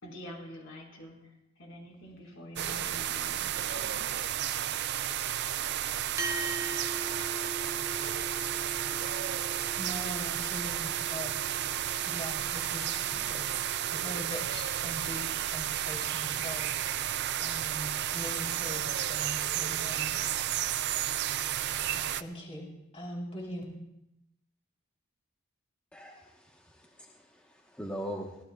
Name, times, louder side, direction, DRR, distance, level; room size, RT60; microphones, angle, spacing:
voice 1, 0.0-4.0, equal, 70° left, -1 dB, 4.9 m, -47 dB
sound 1, 2.6-22.2, right 11 dB, 50° right, 0.4 m, -32 dB
sound 2, 6.2-14.8, right 2 dB, 15° right, 0.7 m, -42 dB
voice 2, 9.7-11.3 12.0-13.5 13.9-17.1 17.4-21.0 21.9-23.8, equal, 30° left, -2 dB, 3.9 m, -42 dB
voice 3, 25.9-28.4, equal, 5° left, -1 dB, 1.2 m, -41 dB
24.5 x 17.0 x 2.4 m, 0.86 s
head